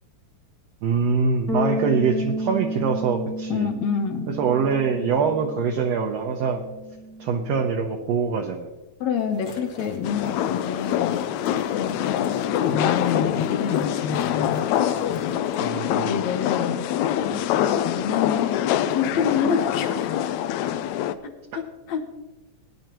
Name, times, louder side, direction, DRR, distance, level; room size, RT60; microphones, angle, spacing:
voice 1, 0.8-3.7 4.4-6.6 7.2-8.7 15.6-16.2, right 5 dB, 70° right, 2 dB, 1.6 m, -24 dB
Bass guitar, 1.5-7.7, equal, 15° left, 0.5 m, -32 dB
voice 2, 3.5-4.4 9.0-11.2 11.7-12.3 12.5-14.8 15.1-16.9 17.3-20.4 21.2-22.0, left 7 dB, 65° left, 6 dB, 2.0 m, -28 dB
sound 1, 9.2-15.6, left 3 dB, 50° left, 2.4 m, -44 dB
sound 2, 10.0-21.1, left 10 dB, 85° left, 1.6 m, -25 dB
18.5 x 10.5 x 3.0 m, 1.1 s
omnidirectional pair, 3.9 m